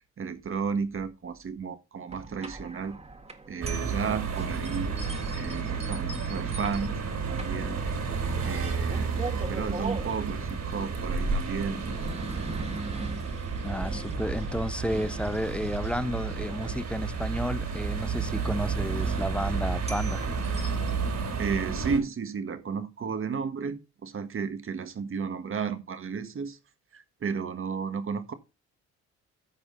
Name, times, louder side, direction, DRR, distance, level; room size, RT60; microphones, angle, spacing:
voice 1, 0.0-3.0 3.5-4.9 5.3-7.0 7.3-7.8 8.4-9.2 9.5-11.8 21.4-26.6 26.9-28.3, right 5 dB, 45° right, 1.6 m, -33 dB
sound 1, 2.1-21.0, right 2 dB, 20° right, 1.7 m, -43 dB
sound 2, 3.6-22.0, right 5 dB, 60° right, 3.6 m, -31 dB
voice 2, 13.6-20.2, equal, 5° left, 0.7 m, -32 dB
14.0 x 5.0 x 3.9 m
cardioid pair, 90°, 30 cm